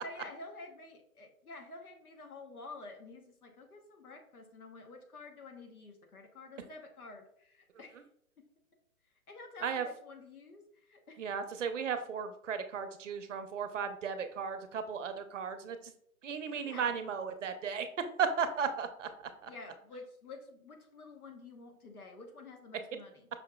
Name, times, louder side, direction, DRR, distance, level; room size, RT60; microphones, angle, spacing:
voice 1, 0.0-8.0 8.4-8.5 9.3-11.2 16.6-17.0 19.5-23.3, left 3 dB, 85° left, 4 dB, 1.1 m, -50 dB
voice 2, 11.2-15.9 16.2-19.5, right 6 dB, 60° right, 9 dB, 0.6 m, -35 dB
5.5 x 2.9 x 2.3 m, 0.69 s
hypercardioid pair, 150°, 43 cm